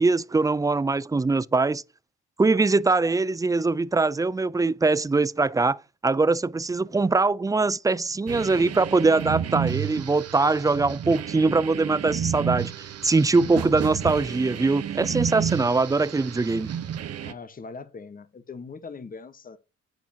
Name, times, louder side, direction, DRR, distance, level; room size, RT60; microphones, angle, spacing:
voice 1, 0.0-1.8 2.4-12.7 13.0-16.7, right 3 dB, 10° right, 0.4 m, -22 dB
sound 1, 8.3-17.3, right 9 dB, 55° right, 1.0 m, -31 dB
voice 2, 17.2-19.6, left 4 dB, 30° left, 1.2 m, -41 dB
10.0 x 8.5 x 2.8 m
cardioid pair, 90°, 30 cm